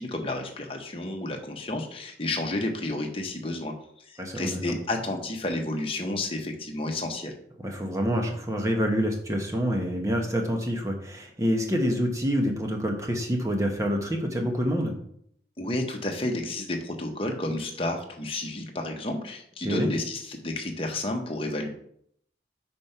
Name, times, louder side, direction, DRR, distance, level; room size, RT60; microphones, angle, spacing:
voice 1, 0.0-3.7 4.1-7.3 15.6-21.7, left 2 dB, 30° left, 2 dB, 1.0 m, -31 dB
voice 2, 4.2-4.6 7.6-14.9 19.6-19.9, equal, 20° right, 2 dB, 1.0 m, -27 dB
5.4 x 4.4 x 5.5 m, 0.69 s
head